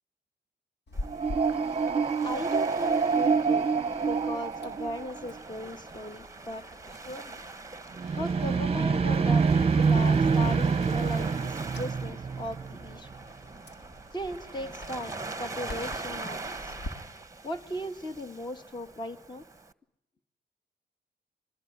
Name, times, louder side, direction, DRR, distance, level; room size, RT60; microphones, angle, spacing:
Chewing mastication, 0.9-16.9, left 1 dB, 65° left, 3.4 m, -47 dB
Waves surf, 0.9-19.7, right 3 dB, 15° right, 1.2 m, -43 dB
sound 1, 1.0-5.4 8.0-12.9, right 5 dB, 30° right, 0.9 m, -26 dB
voice 1, 2.2-3.7 4.1-6.7 7.0-7.4 8.1-13.1 14.1-16.7 17.4-19.4, left 1 dB, 25° left, 7 dB, 1.8 m, -37 dB
26.5 x 20.5 x 9.7 m, 0.87 s
cardioid pair, 85°, 19 cm